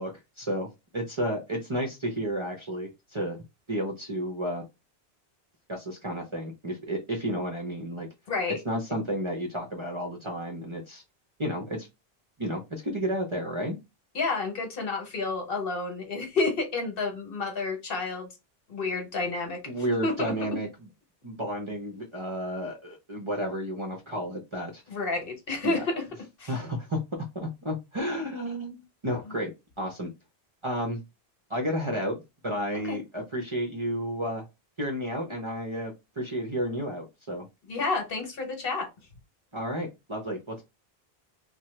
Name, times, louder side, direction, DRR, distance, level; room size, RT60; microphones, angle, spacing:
voice 1, 0.0-3.4 3.7-4.6 5.7-8.1 8.6-11.0 11.4-11.9 12.4-13.8 19.7-20.7 21.2-24.8 25.6-25.9 26.5-27.0 27.3-29.5 29.8-30.1 30.6-31.0 31.5-34.5 34.8-37.5 39.5-40.6, equal, 35° right, 1 dB, 0.5 m, -32 dB
voice 2, 8.3-8.6 14.1-18.3 18.7-19.6 20.0-20.3 24.9-26.0 26.4-26.5 32.9-33.0 37.7-38.9, left 3 dB, 65° left, 4 dB, 1.1 m, -30 dB
2.8 x 2.1 x 3.1 m, 0.24 s
omnidirectional pair, 1.0 m